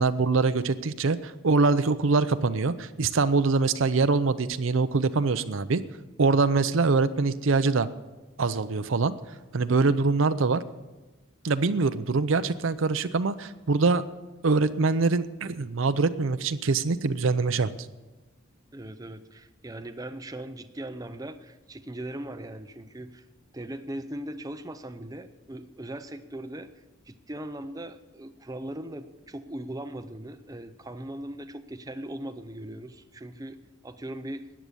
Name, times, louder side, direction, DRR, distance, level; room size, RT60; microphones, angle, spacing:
voice 1, 0.0-5.8 6.2-7.9 8.4-9.1 9.5-10.6 11.4-14.0 14.4-17.7, right 4 dB, 65° right, 12 dB, 0.6 m, -24 dB
voice 2, 18.7-23.2 23.5-26.7 27.1-33.6 33.8-34.5, right 1 dB, 15° right, 9 dB, 0.6 m, -39 dB
13.5 x 9.5 x 6.9 m, 1.1 s
head